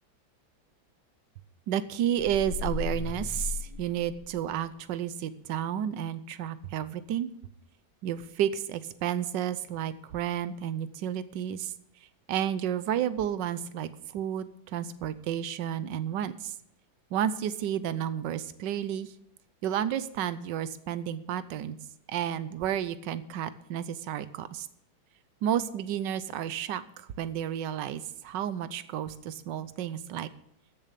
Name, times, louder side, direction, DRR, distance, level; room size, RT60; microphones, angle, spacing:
voice 1, 1.7-7.3 8.0-11.7 12.3-16.5 17.1-19.1 19.6-21.8 22.1-24.7 25.4-30.3, right 10 dB, 70° right, 14 dB, 1.3 m, -31 dB
sound 1, 2.2-4.6, left 5 dB, 75° left, 2.7 m, -35 dB
14.0 x 7.1 x 6.8 m, 0.77 s
omnidirectional pair, 2.2 m